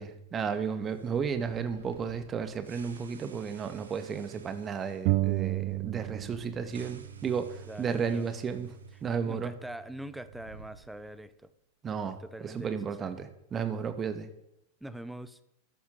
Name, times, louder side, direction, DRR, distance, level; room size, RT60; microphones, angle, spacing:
voice 1, 0.0-9.5 11.8-14.3, right 6 dB, 25° right, 10 dB, 2.1 m, -33 dB
sound 1, 0.9-9.1 9.3-9.4 10.0-11.4, right 4 dB, 70° right, 2.4 m, -54 dB
sound 2, 5.1-6.6 6.8-8.6, right 20 dB, 45° right, 0.8 m, -32 dB
voice 2, 7.7-8.3 9.3-11.5 12.2-13.1 14.8-15.4, right 1 dB, 5° right, 14 dB, 1.2 m, -43 dB
14.0 x 11.5 x 8.8 m, 0.83 s
figure-of-eight pair, 90°, 0 cm